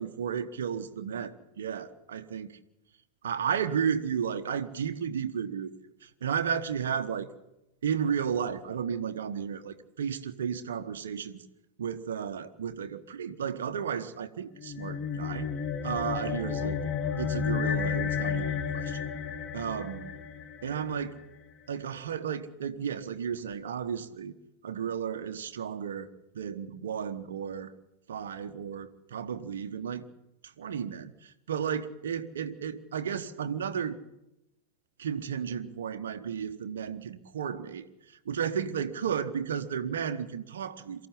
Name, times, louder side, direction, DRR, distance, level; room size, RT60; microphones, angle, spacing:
voice 1, 0.0-2.6 3.2-5.7 6.0-7.3 7.8-11.4 11.8-15.5 15.8-16.8 17.2-19.1 19.5-20.1 20.6-21.1 21.7-24.3 24.6-27.7 28.1-30.0 30.4-34.0 35.0-41.1, right 7 dB, 65° right, 7 dB, 1.1 m, -33 dB
sound 1, 14.6-21.2, left 7 dB, 30° left, 1.4 m, -32 dB
23.5 x 14.0 x 9.9 m, 0.92 s
figure-of-eight pair, 90°, 0 cm